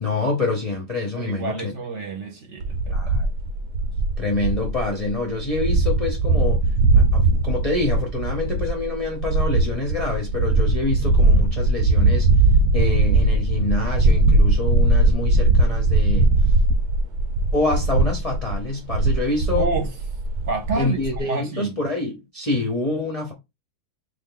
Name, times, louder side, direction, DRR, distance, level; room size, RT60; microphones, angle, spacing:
voice 1, 0.0-1.7 2.9-3.3 4.2-6.6 6.9-12.3 12.7-16.3 17.5-19.7 20.7-23.3, left 3 dB, 35° left, 0.6 m, -26 dB
voice 2, 1.2-3.1 19.6-19.9 20.5-21.0 21.3-21.8, right 3 dB, 55° right, 1.1 m, -28 dB
sound 1, 2.6-21.2, right 2 dB, 85° right, 1.2 m, -20 dB
3.4 x 2.6 x 3.8 m
omnidirectional pair, 1.6 m